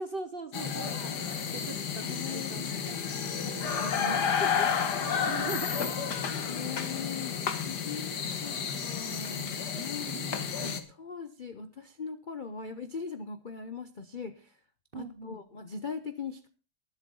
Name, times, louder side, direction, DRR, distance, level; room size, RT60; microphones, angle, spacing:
voice 1, 0.0-4.2 5.3-6.2 8.4-8.7 10.0-10.4 14.9-15.4, right 3 dB, 50° right, 9 dB, 0.7 m, -42 dB
sound 1, 0.5-10.8, left 7 dB, 60° left, 1.9 m, -31 dB
voice 2, 2.0-2.7 3.8-4.7 5.7-5.8 6.5-10.1 10.6-14.5 14.9-16.5, left 5 dB, 75° left, 10 dB, 0.4 m, -40 dB
20.0 x 7.8 x 3.8 m, 0.34 s
omnidirectional pair, 2.1 m